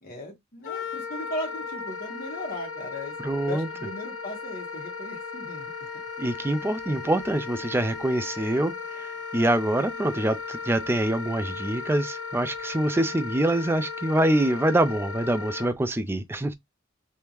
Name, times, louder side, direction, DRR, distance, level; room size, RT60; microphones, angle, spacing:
voice 1, 0.0-3.1 3.5-5.7, left 1 dB, 45° left, 1.5 m, -37 dB
Wind instrument woodwind instrument, 0.6-15.7, left 5 dB, 75° left, 1.1 m, -36 dB
voice 2, 3.2-3.7 6.2-9.1 9.3-16.5, right 1 dB, 10° right, 0.4 m, -25 dB
3.4 x 2.7 x 3.0 m
head